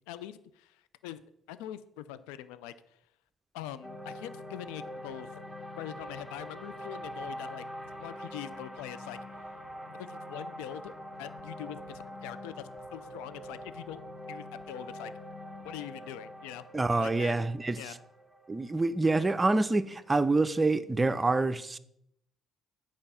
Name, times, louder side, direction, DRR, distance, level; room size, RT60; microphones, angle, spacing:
voice 1, 0.1-1.2 1.5-2.7 3.5-5.4 5.8-7.6 8.0-9.2 10.0-10.9 11.2-14.0 14.3-15.1 15.6-16.7 17.0-17.4 17.8-18.0, left 12 dB, 90° left, 0.4 m, -43 dB
sound 1, 3.8-20.1, equal, 5° left, 1.9 m, -44 dB
voice 2, 16.7-17.8 18.5-21.8, right 3 dB, 20° right, 0.6 m, -26 dB
8.8 x 5.1 x 5.6 m
supercardioid pair, 70°, 0 cm